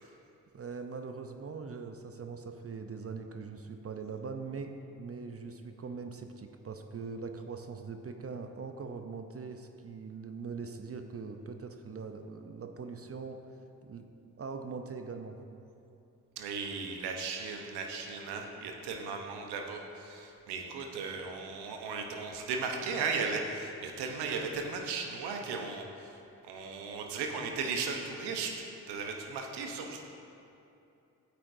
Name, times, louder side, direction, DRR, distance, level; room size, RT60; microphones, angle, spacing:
voice 1, 0.5-13.4 13.8-14.1 14.4-15.4, right 5 dB, 35° right, 6 dB, 0.7 m, -42 dB
voice 2, 16.4-26.1 26.5-30.0, right 4 dB, 75° right, 3 dB, 1.1 m, -36 dB
12.0 x 8.6 x 2.7 m, 2.7 s
hypercardioid pair, 40°, 39 cm